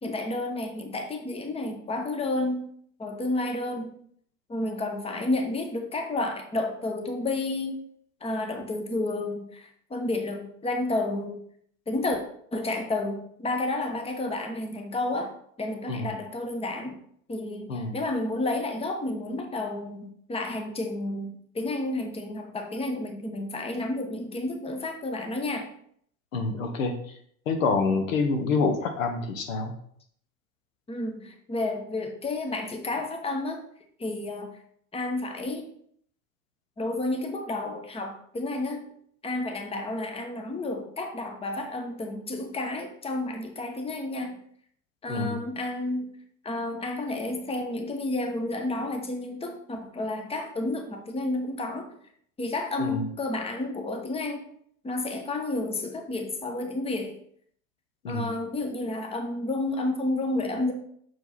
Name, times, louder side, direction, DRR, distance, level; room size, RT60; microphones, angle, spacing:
voice 1, 0.0-2.7 3.0-3.9 4.5-7.8 8.2-11.4 11.9-12.2 12.5-17.0 17.3-25.7 30.9-33.6 34.0-34.5 34.9-35.7 36.8-38.9 39.2-44.4 45.0-46.1 46.4-51.9 52.4-54.4 54.8-57.2 58.1-60.7, left 2 dB, 15° left, 4 dB, 1.1 m, -31 dB
voice 2, 26.3-26.9 27.5-29.7 45.1-45.4 52.8-53.0 58.0-58.3, left 4 dB, 70° left, 6 dB, 1.1 m, -27 dB
6.5 x 4.6 x 4.1 m, 0.64 s
figure-of-eight pair, 80°, 41 cm